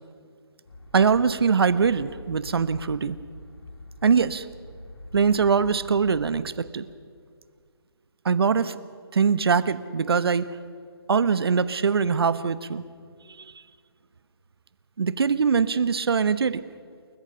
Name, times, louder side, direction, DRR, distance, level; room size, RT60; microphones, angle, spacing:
sound 1, 0.7-6.5, left 1 dB, 80° left, 4.5 m, -44 dB
voice 1, 0.9-3.2 4.0-4.5 5.1-6.9 8.2-8.8 9.1-10.5 11.1-12.8 13.4-13.5 15.0-16.6, right 6 dB, 65° right, 15 dB, 1.1 m, -22 dB
29.0 x 14.0 x 6.8 m, 2.1 s
hypercardioid pair, 165°, 14 cm